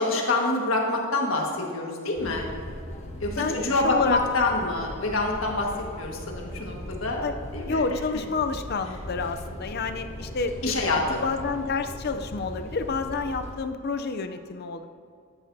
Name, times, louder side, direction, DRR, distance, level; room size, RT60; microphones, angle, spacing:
voice 1, 0.0-2.5 3.2-7.2 7.5-7.8 10.6-11.2, left 2 dB, 70° left, 0 dB, 1.7 m, -26 dB
sound 1, 2.1-13.6, equal, 35° left, 1.4 m, -39 dB
voice 2, 3.4-4.2 7.2-7.4 7.7-14.8, left 4 dB, 50° left, 8 dB, 0.5 m, -29 dB
13.0 x 12.0 x 2.7 m, 2.3 s
head